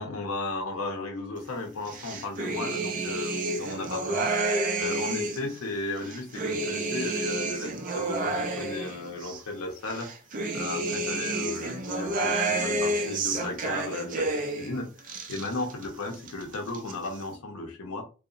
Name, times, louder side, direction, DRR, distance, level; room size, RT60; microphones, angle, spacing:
voice 1, 0.0-10.1 10.5-18.0, left 2 dB, 80° left, 0.6 m, -35 dB
sound 1, 1.9-5.5 6.0-9.4 9.9-14.7 15.0-15.9 16.1-16.9, right 2 dB, 40° right, 0.4 m, -30 dB
2.7 x 2.0 x 2.4 m
head